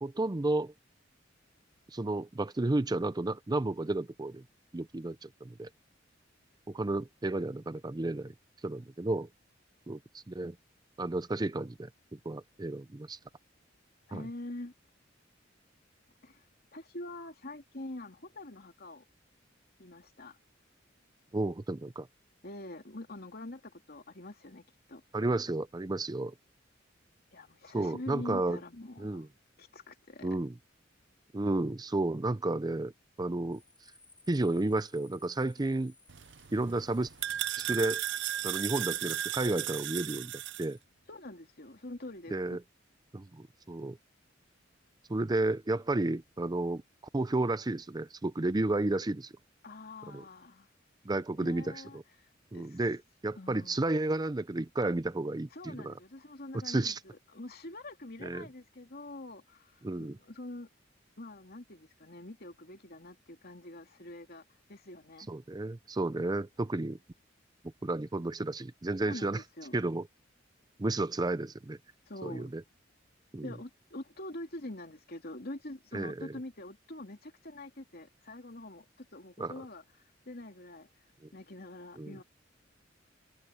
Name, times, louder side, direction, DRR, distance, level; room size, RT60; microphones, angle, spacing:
voice 1, 0.0-0.7 1.9-4.4 4.7-5.7 6.7-8.3 8.6-9.3 9.9-10.5 11.0-13.2 14.1-14.2 21.3-22.1 25.1-26.3 27.7-28.6 29.0-29.3 30.2-30.5 31.3-32.9 33.2-33.6 34.3-35.9 36.5-37.1 37.6-38.0 38.4-40.3 40.6-40.8 42.3-42.6 43.1-44.0 45.1-46.8 47.1-49.3 50.1-50.2 51.1-52.0 52.5-55.9 56.6-57.0 58.2-58.5 59.8-60.2 65.3-67.0 67.8-69.4 69.7-70.1 70.8-71.8 72.2-72.6 73.3-73.5 75.9-76.3 79.4-79.5 82.0-82.2, right 2 dB, 20° right, 0.5 m, -32 dB
voice 2, 14.1-14.7 16.2-16.4 16.7-19.0 19.8-20.4 22.4-24.6 24.9-25.0 27.3-29.3 29.6-30.4 41.1-42.6 49.6-50.7 51.3-52.8 53.4-53.8 55.5-60.7 61.2-64.4 64.7-65.3 69.0-69.7 72.1-72.5 73.4-79.8 80.3-80.9 81.3-82.2, left 1 dB, 55° left, 3.0 m, -45 dB
sound 1, 33.5-40.8, left 2 dB, 10° left, 6.4 m, -62 dB
sound 2, 36.1-40.7, right 12 dB, 65° right, 0.7 m, -35 dB
head